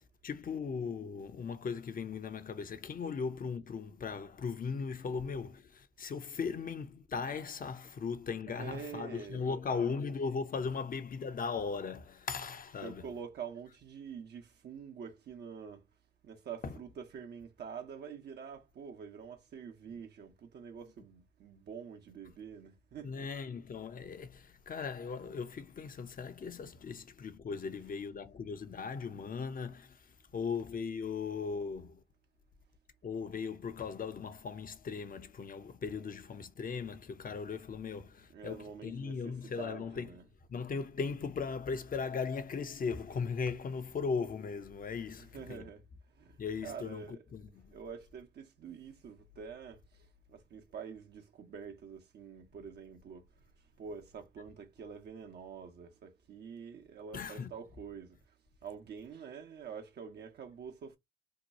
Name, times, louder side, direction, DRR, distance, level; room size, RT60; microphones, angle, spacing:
voice 1, 0.2-13.0 16.6-16.7 23.0-32.0 33.0-40.1 40.5-45.6 46.4-47.8 57.1-57.5, left 5 dB, 55° left, 0.7 m, -38 dB
voice 2, 8.5-10.0 12.8-15.8 16.2-23.3 38.3-40.2 45.1-45.8 46.2-47.2 47.7-53.3 53.8-58.2 58.6-61.0, right 6 dB, 75° right, 0.8 m, -46 dB
2.9 x 2.3 x 4.0 m
supercardioid pair, 40°, 17 cm